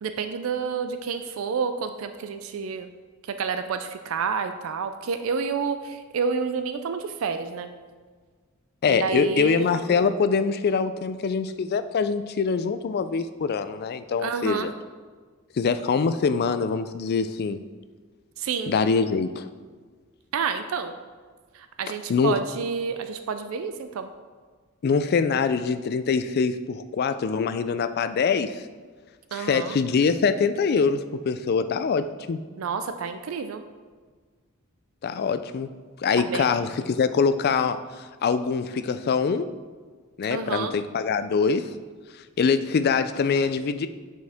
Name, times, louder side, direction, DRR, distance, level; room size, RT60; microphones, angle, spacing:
voice 1, 0.0-2.9 3.3-7.7 8.9-9.7 14.2-14.7 18.4-18.7 20.3-20.9 21.5-24.1 29.3-29.8 32.6-33.6 36.1-36.5 40.3-40.8, right 5 dB, 70° right, 9 dB, 0.4 m, -29 dB
voice 2, 8.8-14.7 15.6-17.6 18.7-19.5 22.1-22.4 24.8-28.6 29.3-32.4 35.0-35.7 36.0-39.5 40.2-41.7 42.4-43.9, left 5 dB, 50° left, 11 dB, 0.3 m, -24 dB
8.8 x 4.6 x 3.5 m, 1.5 s
head